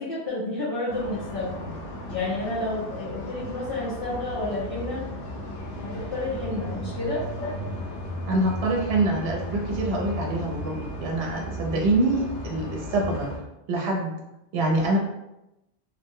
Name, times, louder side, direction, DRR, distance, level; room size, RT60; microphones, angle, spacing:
voice 1, 0.0-1.7 2.1-5.1 5.8-7.3, left 2 dB, 60° left, -8 dB, 0.9 m, -30 dB
sound 1, 0.9-13.4, left 1 dB, 85° left, 0.9 m, -35 dB
voice 2, 8.3-13.3 13.7-14.1 14.5-15.0, right 2 dB, 70° right, 0 dB, 0.8 m, -25 dB
2.6 x 2.0 x 3.5 m, 0.91 s
omnidirectional pair, 1.1 m